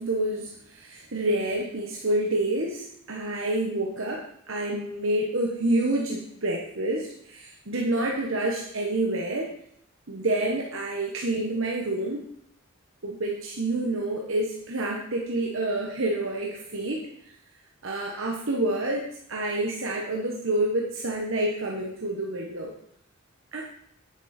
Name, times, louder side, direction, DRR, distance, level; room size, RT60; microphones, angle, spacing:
voice 1, 0.0-9.5 10.1-12.2 13.0-17.3 17.8-22.7 23.5-23.6, right 1 dB, 70° right, -1 dB, 1.4 m, -28 dB
9.9 x 8.9 x 4.4 m, 0.70 s
head